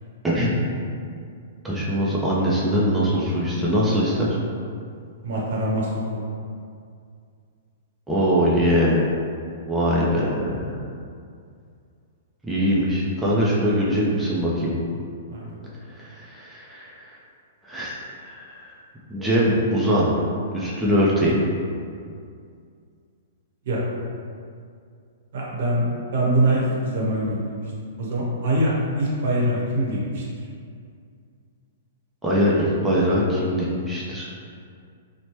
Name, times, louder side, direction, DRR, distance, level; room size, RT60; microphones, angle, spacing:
voice 1, 0.2-0.6 1.6-4.4 8.1-9.1 9.7-10.6 12.4-14.8 16.0-17.1 17.7-18.0 18.3-18.7 19.1-20.1 20.5-21.4 32.2-34.3, equal, 5° right, -7 dB, 0.5 m, -22 dB
voice 2, 5.2-5.9 15.3-15.6 23.7-23.8 25.3-27.6 28.0-30.2, right 1 dB, 65° right, -4 dB, 0.8 m, -23 dB
2.9 x 2.1 x 3.0 m, 2.3 s
hypercardioid pair, 125°, 0 cm